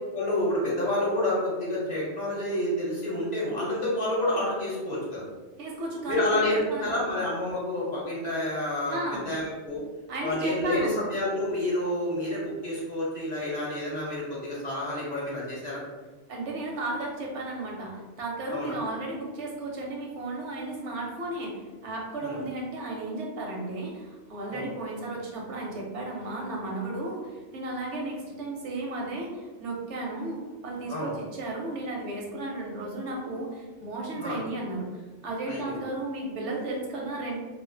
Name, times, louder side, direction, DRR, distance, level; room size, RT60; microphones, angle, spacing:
voice 1, 0.1-5.2 6.1-9.8 10.2-15.8 18.5-18.8 22.2-22.4 24.5-24.7 30.9-31.1 34.2-34.4 35.5-35.8, left 1 dB, 40° left, -6 dB, 0.7 m, -29 dB
voice 2, 5.6-6.9 8.9-9.2 10.1-10.9 16.3-34.9 35.2-37.4, right 2 dB, 80° right, -1 dB, 0.9 m, -34 dB
2.4 x 2.4 x 2.5 m, 1.3 s
omnidirectional pair, 1.2 m